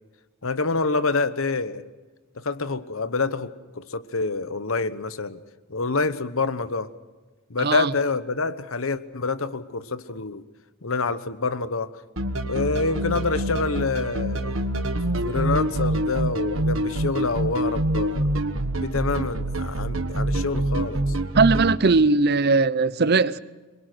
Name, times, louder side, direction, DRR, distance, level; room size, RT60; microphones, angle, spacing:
voice 1, 0.4-1.8 2.4-5.4 5.7-6.9 7.5-10.4 10.8-12.0 12.5-14.6 15.2-18.3 18.8-21.0, left 3 dB, 75° left, 1.1 m, -27 dB
voice 2, 7.6-7.9 21.4-23.4, right 4 dB, 50° right, 0.7 m, -19 dB
sound 1, 12.2-21.8, right 1 dB, 70° right, 1.5 m, -26 dB
26.5 x 23.0 x 6.3 m
head